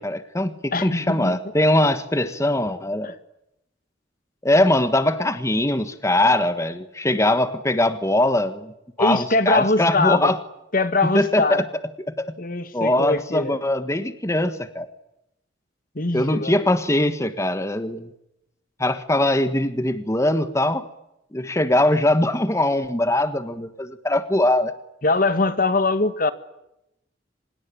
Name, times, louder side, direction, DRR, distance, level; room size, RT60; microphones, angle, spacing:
voice 1, 0.0-3.1 4.4-8.7 9.0-10.4 11.0-11.6 12.1-12.3 12.7-14.9 16.1-18.1 18.8-20.9 21.3-24.7, left 1 dB, 15° left, 1.4 m, -21 dB
voice 2, 0.7-1.4 3.0-3.1 9.0-10.3 10.7-11.6 12.4-13.6 15.9-16.6 25.0-26.3, left 3 dB, 45° left, 1.7 m, -22 dB
25.5 x 21.0 x 10.0 m
head